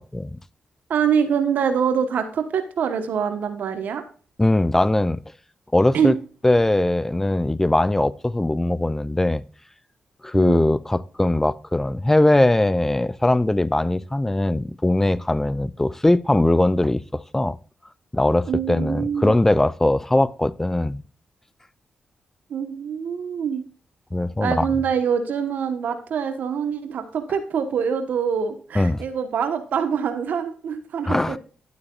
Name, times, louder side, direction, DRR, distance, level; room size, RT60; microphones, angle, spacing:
voice 1, 0.9-4.0 5.9-6.1 10.3-10.6 18.5-19.4 22.5-23.6 24.4-31.4, right 7 dB, 75° right, 1.2 m, -24 dB
voice 2, 4.4-5.2 5.7-6.2 6.4-9.4 10.2-17.6 18.1-21.0 24.1-24.7 28.8-29.0 31.1-31.4, left 1 dB, 15° left, 0.5 m, -20 dB
11.5 x 8.6 x 2.4 m
cardioid pair, 65°, 3 cm